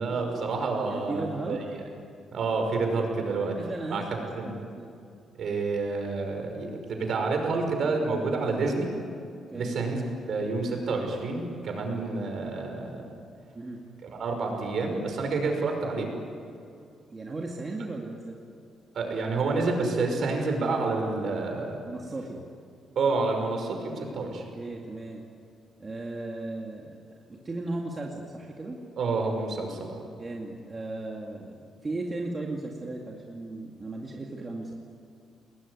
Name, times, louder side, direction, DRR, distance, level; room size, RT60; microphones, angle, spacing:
voice 1, 0.0-1.8 2.3-3.6 3.9-4.0 4.4-4.5 5.4-8.9 9.5-10.0 10.3-13.1 14.0-16.1 18.9-21.8 23.0-24.5 29.0-30.0, right 3 dB, 50° right, 4 dB, 5.6 m, -29 dB
voice 2, 0.9-1.6 3.5-4.0 4.4-4.9 9.5-9.8 13.5-13.8 17.1-18.4 21.8-22.5 24.6-25.2 25.8-27.0 27.3-28.8 30.2-34.7, right 2 dB, 20° right, -1 dB, 2.2 m, -36 dB
29.5 x 20.5 x 9.7 m, 2.4 s
cardioid pair, 175°, 0 cm